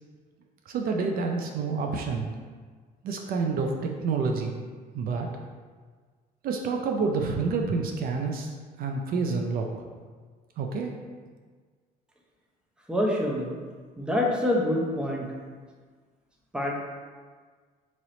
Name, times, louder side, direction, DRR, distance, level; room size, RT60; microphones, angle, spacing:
voice 1, 0.7-2.3 3.0-4.5 4.9-5.3 6.4-9.7 10.6-10.9, right 4 dB, 60° right, 3 dB, 0.4 m, -28 dB
voice 2, 12.9-13.6 14.0-15.2 16.5-16.7, left 1 dB, 5° right, -1 dB, 0.6 m, -26 dB
3.0 x 3.0 x 3.9 m, 1.5 s
cardioid pair, 110°, 17 cm